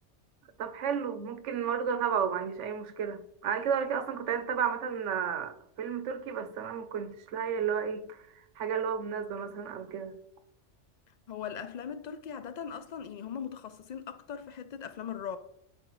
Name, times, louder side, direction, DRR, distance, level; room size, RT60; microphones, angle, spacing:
voice 1, 0.6-8.2 8.6-10.2, right 7 dB, 75° right, 1.0 m, -32 dB
voice 2, 11.3-15.4, left 8 dB, 65° left, 0.4 m, -39 dB
12.0 x 4.2 x 3.0 m
omnidirectional pair, 1.2 m